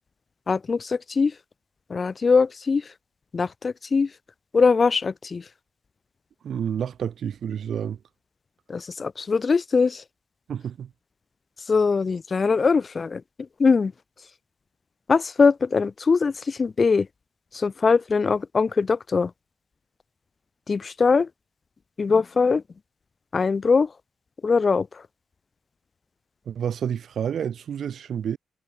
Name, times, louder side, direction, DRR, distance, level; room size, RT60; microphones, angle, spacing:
voice 1, 0.5-1.3 1.9-2.8 3.3-4.1 4.5-5.4 8.7-10.0 11.7-13.2 13.6-13.9 15.1-17.1 17.5-19.3 20.7-21.3 22.0-22.6 23.3-23.9 24.4-24.9, left 4 dB, 45° left, 0.5 m, -21 dB
voice 2, 6.4-8.0 10.5-10.9 26.5-28.4, right 8 dB, 70° right, 2.0 m, -29 dB
supercardioid pair, 50°, 0 cm